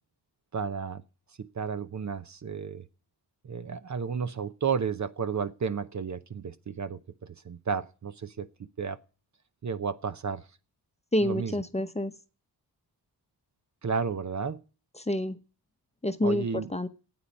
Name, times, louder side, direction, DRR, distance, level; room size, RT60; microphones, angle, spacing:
voice 1, 0.5-1.0 1.4-2.8 3.4-8.5 8.8-9.0 9.6-10.4 11.2-11.6 13.8-14.6 16.2-16.7, right 6 dB, 45° right, 0.8 m, -32 dB
voice 2, 11.1-12.1 15.0-15.4 16.0-16.9, left 1 dB, 15° left, 0.9 m, -28 dB
9.4 x 8.7 x 9.5 m
wide cardioid pair, 100°, 40 cm